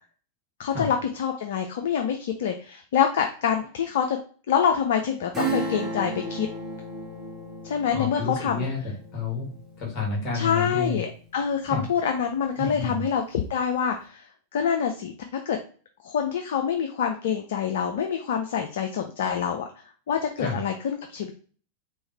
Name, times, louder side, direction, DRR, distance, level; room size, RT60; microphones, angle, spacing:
voice 1, 0.6-4.2 4.5-6.5 7.6-8.7 10.3-15.1 15.5-15.6 16.0-19.7 20.1-21.3, left 7 dB, 55° left, 4 dB, 0.4 m, -26 dB
Acoustic guitar / Strum, 5.3-11.5 11.9-12.0, right 2 dB, 20° right, 1.5 m, -35 dB
voice 2, 7.9-8.8 9.1-11.0 11.7-11.8 12.6-13.0 20.4-20.6, left 4 dB, 35° left, -3 dB, 1.6 m, -30 dB
3.6 x 3.1 x 3.2 m, 0.42 s
figure-of-eight pair, 90°, 0 cm